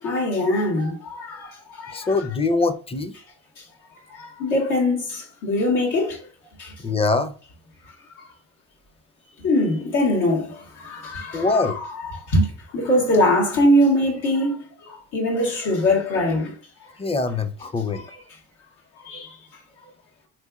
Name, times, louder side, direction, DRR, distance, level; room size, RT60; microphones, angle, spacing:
voice 1, 0.0-2.1 3.6-3.7 4.1-6.2 6.6-6.7 9.4-12.5 12.7-16.5 17.9-18.0 19.0-19.4, left 1 dB, 90° left, 1.5 m, -22 dB
voice 2, 1.9-3.1 6.8-7.4 11.3-11.8 17.0-18.0, left 3 dB, 20° left, 0.5 m, -23 dB
3.6 x 3.2 x 2.3 m
cardioid pair, 90°, 30 cm